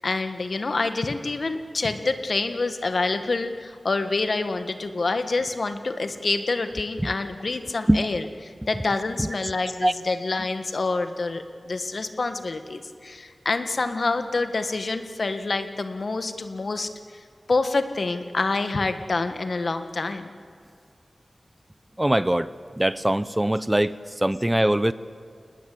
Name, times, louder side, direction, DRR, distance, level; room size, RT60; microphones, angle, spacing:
voice 1, 0.0-8.2 8.7-16.9 17.5-20.3, left 3 dB, 65° left, 9 dB, 1.6 m, -27 dB
voice 2, 22.0-22.5 22.8-24.9, right 1 dB, 15° right, 15 dB, 0.8 m, -22 dB
28.5 x 20.0 x 8.5 m, 2.2 s
wide cardioid pair, 80°, 0 cm